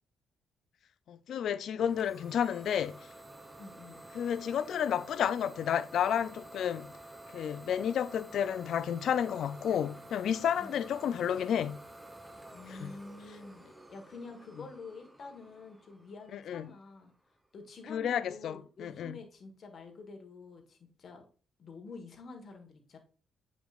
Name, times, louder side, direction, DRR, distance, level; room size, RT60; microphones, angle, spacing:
voice 1, 1.1-3.1 4.1-6.9 7.3-11.8 12.8-12.9 16.3-16.7 17.9-19.2, left 9 dB, 70° left, 0.4 m, -31 dB
Idling / Domestic sounds home sounds, 1.8-17.3, right 1 dB, 10° right, 0.8 m, -51 dB
voice 2, 3.6-4.0 10.6-10.8 12.5-17.1 17.5-21.2 21.6-23.0, left 3 dB, 50° left, 1.6 m, -48 dB
8.1 x 5.0 x 2.5 m
cardioid pair, 85°, 0 cm